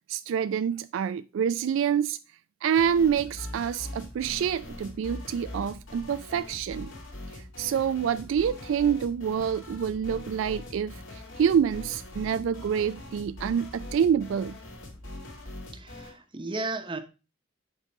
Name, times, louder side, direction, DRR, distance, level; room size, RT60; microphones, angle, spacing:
voice 1, 0.1-2.2 2.6-6.9 7.3-14.6, right 8 dB, 70° right, 0.3 m, -27 dB
sound 1, 2.7-16.2, left 1 dB, 70° left, 2.2 m, -42 dB
voice 2, 15.7-17.0, right 2 dB, 25° right, 0.9 m, -34 dB
8.0 x 3.8 x 4.6 m
head